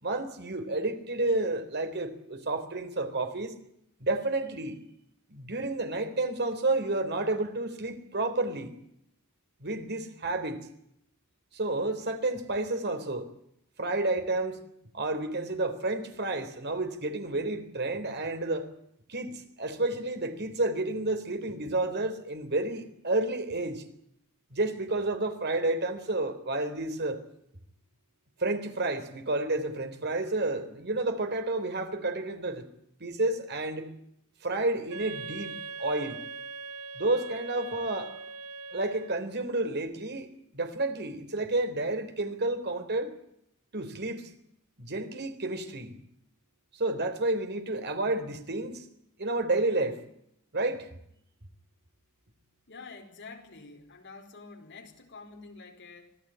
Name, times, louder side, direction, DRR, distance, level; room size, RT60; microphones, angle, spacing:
voice 1, 0.0-3.5 4.0-4.8 5.3-8.7 9.6-10.6 11.5-13.3 13.8-14.6 14.9-18.7 19.1-23.8 24.5-27.2 28.4-32.7 33.0-33.9 34.4-36.2 36.9-38.1 38.7-43.1 43.7-44.3 44.8-46.0 46.7-48.8 49.2-50.0 50.5-50.9, right 2 dB, 50° right, 3.8 m, -30 dB
Wind instrument woodwind instrument, 34.9-39.3, right 4 dB, 90° right, 1.4 m, -41 dB
voice 2, 52.7-56.2, left 4 dB, 55° left, 4.6 m, -48 dB
26.0 x 17.5 x 9.0 m
head